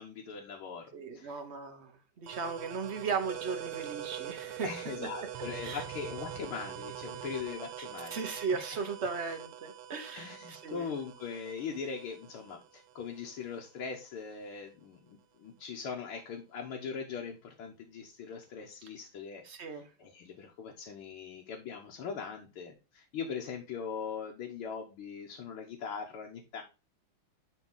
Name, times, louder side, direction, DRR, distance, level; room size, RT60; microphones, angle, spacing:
voice 1, 0.0-1.4 4.6-8.2 8.5-8.6 10.2-26.6, left 6 dB, 75° left, 1.9 m, -41 dB
voice 2, 0.9-4.7 5.6-5.8 8.1-10.9 19.4-19.9, right 5 dB, 45° right, 0.9 m, -37 dB
sound 1, 2.3-13.7, right 10 dB, 80° right, 1.7 m, -44 dB
10.5 x 3.6 x 3.8 m
omnidirectional pair, 2.4 m